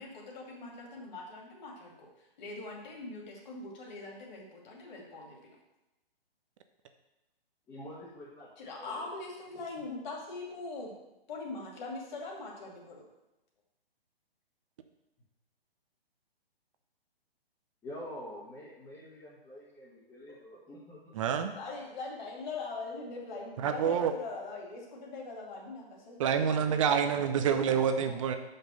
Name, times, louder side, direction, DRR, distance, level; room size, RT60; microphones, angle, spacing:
voice 1, 0.0-2.1 2.4-5.6 8.6-10.9 11.3-13.0 20.3-20.4 21.5-26.8 27.2-27.6, left 3 dB, 45° left, -1 dB, 2.5 m, -42 dB
voice 2, 7.7-8.5 8.8-9.0 17.8-21.1 27.2-27.3 27.6-28.3, left 1 dB, 10° left, -9 dB, 1.3 m, -47 dB
voice 3, 21.1-21.5 23.6-24.1 26.2-28.4, right 7 dB, 35° right, 8 dB, 0.6 m, -27 dB
5.7 x 5.4 x 6.6 m, 0.97 s
hypercardioid pair, 145°, 31 cm